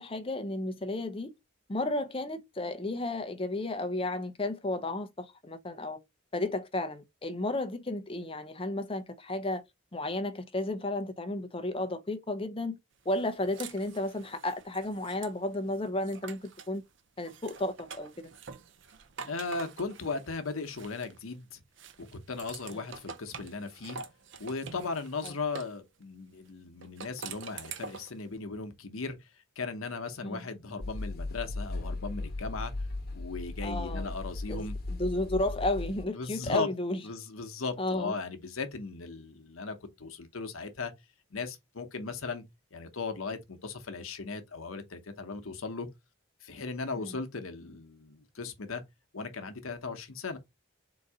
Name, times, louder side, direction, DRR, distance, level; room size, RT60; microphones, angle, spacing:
voice 1, 0.0-1.3 1.7-6.0 6.3-9.6 9.9-12.8 13.1-16.8 17.2-18.3 22.7-22.9 25.2-25.3 30.2-30.5 33.6-34.1 34.5-37.0 37.8-38.1 47.0-47.2, left 2 dB, 25° left, 0.6 m, -33 dB
sound 1, 13.1-16.8 17.2-21.4 21.8-25.8 26.8-28.2, right 5 dB, 60° right, 0.5 m, -46 dB
voice 2, 19.3-21.6 22.0-24.0 24.4-29.3 29.6-32.7 33.1-34.7 36.1-36.7 37.0-40.9 41.3-42.4 42.7-45.9 46.4-48.8 49.1-50.4, left 4 dB, 80° left, 0.9 m, -37 dB
sound 2, 30.8-36.0, left 2 dB, 45° left, 1.0 m, -37 dB
3.9 x 2.7 x 4.7 m
head